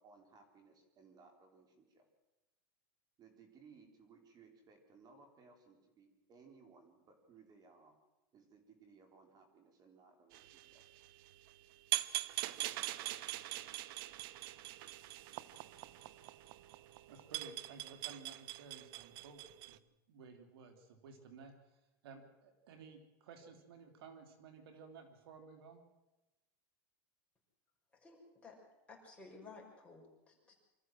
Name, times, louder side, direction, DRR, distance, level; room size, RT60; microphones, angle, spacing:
voice 1, 0.0-2.1 3.2-8.0 8.3-10.8, right 5 dB, 30° right, 5 dB, 4.1 m, -62 dB
sound 1, 10.3-19.8, right 16 dB, 65° right, 0.9 m, -43 dB
voice 2, 17.1-19.8 20.1-21.5 22.0-25.8, right 4 dB, 80° right, 6 dB, 3.4 m, -55 dB
voice 3, 27.9-28.6 28.9-30.6, left 4 dB, 10° left, -2 dB, 6.4 m, -56 dB
25.5 x 14.0 x 7.8 m, 1.0 s
supercardioid pair, 130°, 12 cm